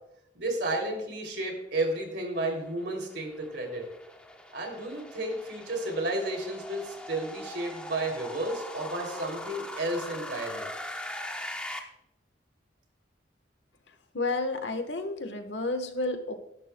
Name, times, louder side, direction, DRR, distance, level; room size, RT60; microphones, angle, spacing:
voice 1, 0.3-3.8 4.5-10.7, right 2 dB, 70° right, 2 dB, 2.9 m, -32 dB
sound 1, 2.2-11.8, left 1 dB, 5° left, 0.9 m, -41 dB
voice 2, 14.1-16.3, left 2 dB, 75° left, 7 dB, 1.2 m, -31 dB
19.0 x 11.0 x 2.3 m, 0.86 s
head